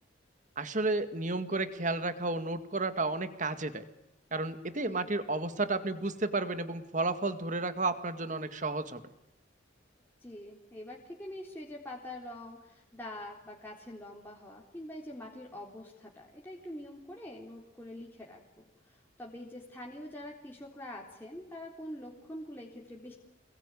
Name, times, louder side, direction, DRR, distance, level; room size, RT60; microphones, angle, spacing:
voice 1, 0.6-3.9 4.3-9.0, right 3 dB, 40° right, 10 dB, 2.1 m, -32 dB
voice 2, 4.7-5.1 10.2-23.1, left 1 dB, 10° left, -3 dB, 3.6 m, -45 dB
28.0 x 21.5 x 9.9 m, 0.89 s
head